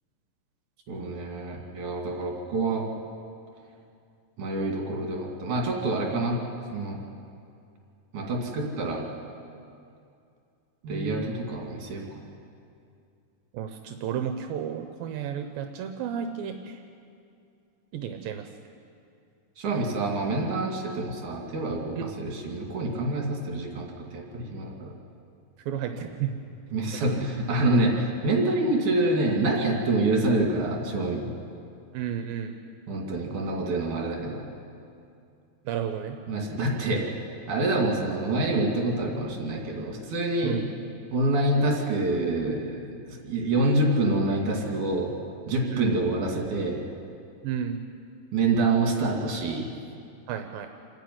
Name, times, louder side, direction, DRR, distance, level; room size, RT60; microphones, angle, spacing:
voice 1, 0.9-2.9 4.4-6.4 6.7-7.0 8.1-9.0 10.8-12.1 19.6-24.9 25.9-26.0 26.7-31.3 32.9-34.4 36.3-37.2 37.5-40.7 41.1-45.1 45.5-46.8 48.3-49.7, right 2 dB, 60° right, 0 dB, 3.9 m, -26 dB
voice 2, 13.5-16.8 17.9-18.4 22.0-22.1 25.7-26.3 27.0-27.1 31.9-32.5 35.7-36.2 40.4-40.6 45.7-46.0 47.4-47.8 50.3-50.7, right 9 dB, 80° right, 6 dB, 2.6 m, -32 dB
28.0 x 10.0 x 9.4 m, 2.5 s
omnidirectional pair, 4.1 m